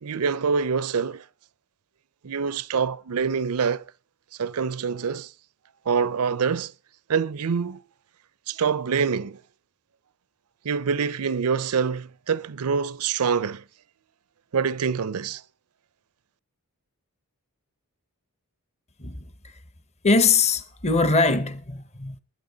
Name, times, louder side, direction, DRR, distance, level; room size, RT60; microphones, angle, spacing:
voice 1, 0.0-1.2 2.2-3.9 4.4-5.3 5.9-6.7 7.1-7.8 8.5-9.4 10.6-13.6 14.5-15.4, right 6 dB, 85° right, 0.6 m, -25 dB
voice 2, 19.0-19.5 20.0-22.2, left 3 dB, 30° left, 0.8 m, -22 dB
20.5 x 10.0 x 3.9 m
head